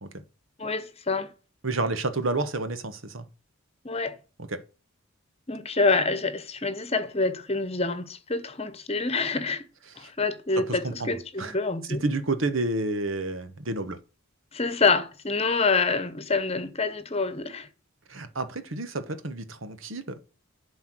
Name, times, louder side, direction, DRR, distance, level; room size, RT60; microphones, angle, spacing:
voice 1, 0.6-1.3 3.8-4.2 5.5-9.7 10.0-12.0 14.5-17.7, left 3 dB, 30° left, 1.1 m, -27 dB
voice 2, 1.6-3.2 4.5-4.6 10.0-10.1 10.7-11.5 11.9-14.0 18.1-20.1, right 2 dB, 70° right, 1.3 m, -30 dB
11.5 x 4.6 x 6.1 m
head